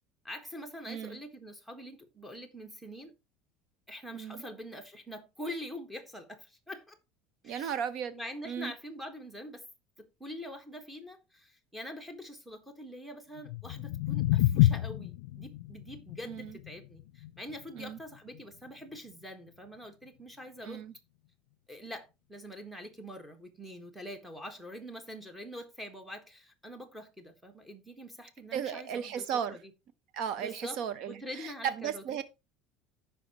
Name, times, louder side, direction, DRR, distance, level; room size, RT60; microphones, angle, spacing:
voice 1, 0.2-3.1 3.9-7.0 7.4-7.7 8.1-9.6 10.0-20.8 21.7-29.6 30.4-30.8 31.0-32.2, equal, ahead, 1.5 m, -44 dB
voice 2, 0.9-1.2 4.1-4.4 7.4-8.1 8.4-8.7 16.2-16.6 17.7-18.0 20.6-20.9 28.5-29.6 30.1-32.2, right 8 dB, 55° right, 0.7 m, -35 dB
sound 1, 13.4-19.5, left 15 dB, 90° left, 0.4 m, -30 dB
14.5 x 5.7 x 3.0 m
cardioid pair, 145°, 0 cm